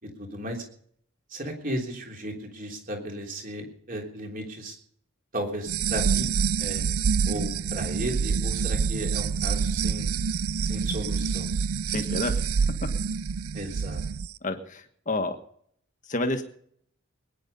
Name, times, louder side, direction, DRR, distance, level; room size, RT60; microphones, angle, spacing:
voice 1, 0.0-0.6 1.3-4.7 5.3-6.3 6.6-6.8 7.2-10.1 10.6-11.5 13.5-14.0, right 1 dB, 40° right, 2 dB, 3.4 m, -35 dB
sound 1, 5.7-14.3, right 6 dB, 90° right, 0.5 m, -27 dB
voice 2, 11.9-12.4 14.4-15.4 16.1-16.4, left 2 dB, 35° left, 7 dB, 1.5 m, -29 dB
20.5 x 10.0 x 5.4 m, 0.62 s
head